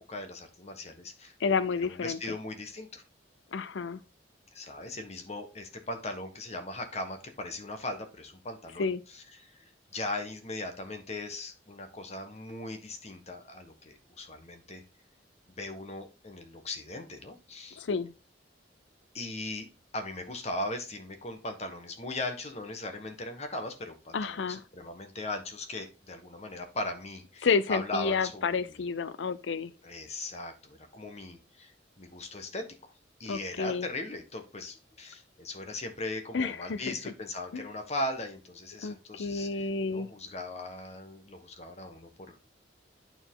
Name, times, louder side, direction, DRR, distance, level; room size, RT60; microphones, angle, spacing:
voice 1, 0.0-1.3 1.8-3.0 4.5-14.8 15.5-17.8 19.1-19.7 19.9-28.6 29.8-32.9 33.2-42.4, left 2 dB, 35° left, 1.3 m, -39 dB
voice 2, 1.4-2.2 3.5-4.0 8.8-9.0 17.8-18.1 24.1-24.6 27.4-29.7 33.2-33.9 36.3-36.9 37.5-37.6 38.8-40.1, left 5 dB, 85° left, 0.5 m, -30 dB
9.0 x 4.5 x 3.7 m
head